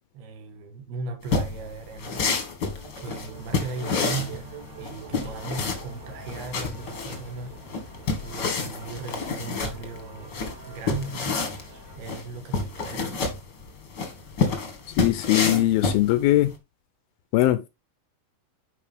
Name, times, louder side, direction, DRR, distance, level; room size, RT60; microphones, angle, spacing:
voice 1, 0.1-2.4 3.0-7.9 8.2-11.5 12.0-13.4, right 4 dB, 80° right, 3.4 m, -37 dB
sound 1, 1.2-16.5, left 4 dB, 50° left, 1.3 m, -29 dB
sound 2, 2.6-13.2, right 2 dB, 50° right, 2.5 m, -47 dB
sound 3, 3.3-12.0, right 3 dB, 35° right, 1.7 m, -50 dB
voice 2, 15.0-16.5 17.3-17.6, left 15 dB, 80° left, 2.3 m, -20 dB
10.0 x 5.1 x 3.5 m
omnidirectional pair, 4.4 m